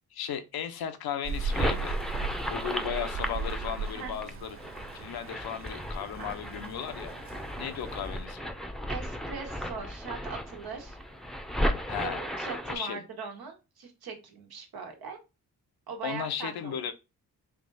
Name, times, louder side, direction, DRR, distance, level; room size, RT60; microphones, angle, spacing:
voice 1, 0.1-1.9 2.5-4.6 4.9-7.1 7.6-8.5 11.9-12.2 12.7-13.0 16.0-16.9, left 9 dB, 75° left, 0.8 m, -35 dB
Rain, 1.2-8.2, right 5 dB, 35° right, 0.4 m, -37 dB
sound 1, 1.3-12.8, equal, ahead, 0.7 m, -35 dB
voice 2, 8.9-11.0 12.0-15.2 15.9-16.8, right 5 dB, 70° right, 1.4 m, -40 dB
3.4 x 2.7 x 4.0 m
cardioid pair, 60°, 38 cm